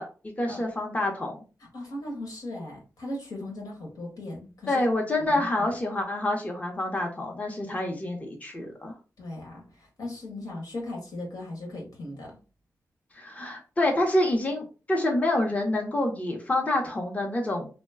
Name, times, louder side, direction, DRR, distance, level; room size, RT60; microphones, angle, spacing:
voice 1, 0.0-1.4 4.7-8.9 13.2-17.7, left 1 dB, 25° left, 1 dB, 0.7 m, -27 dB
voice 2, 1.7-5.7 9.2-12.4, left 1 dB, 90° left, 0 dB, 1.5 m, -38 dB
3.0 x 2.1 x 3.5 m, 0.34 s
wide cardioid pair, 130°, 6 cm